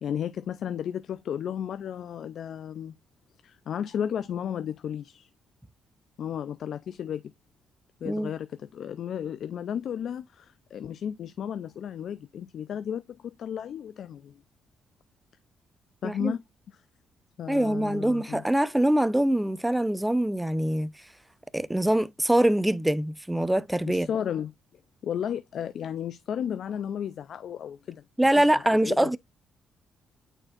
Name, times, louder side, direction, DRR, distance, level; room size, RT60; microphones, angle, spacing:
voice 1, 0.0-2.9 3.4-5.3 6.2-7.2 8.0-14.4 16.0-16.4 17.4-18.4 23.9-24.5 25.0-28.0 28.4-29.1, left 9 dB, 65° left, 0.4 m, -33 dB
voice 2, 17.5-20.9 21.5-24.1 28.2-29.2, right 1 dB, 5° right, 0.6 m, -24 dB
8.9 x 4.4 x 2.4 m
cardioid pair, 90°, 0 cm